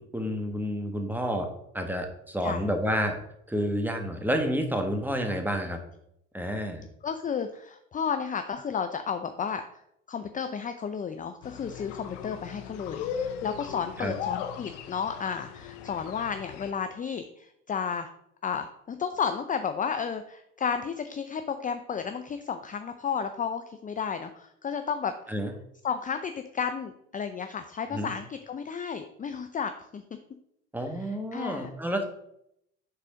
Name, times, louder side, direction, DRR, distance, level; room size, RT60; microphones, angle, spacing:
voice 1, 0.0-1.5 1.7-3.2 3.5-5.8 6.3-6.8 14.0-14.1 25.3-25.5 27.9-28.1 30.7-32.0, equal, 5° right, 5 dB, 1.4 m, -29 dB
voice 2, 7.0-9.8 10.1-18.1 18.4-25.4 25.8-30.0 30.9-31.7, left 6 dB, 25° left, 8 dB, 0.5 m, -32 dB
sound 1, 11.4-16.7, left 8 dB, 85° left, 0.7 m, -37 dB
6.3 x 4.1 x 5.0 m, 0.75 s
hypercardioid pair, 70°, 35 cm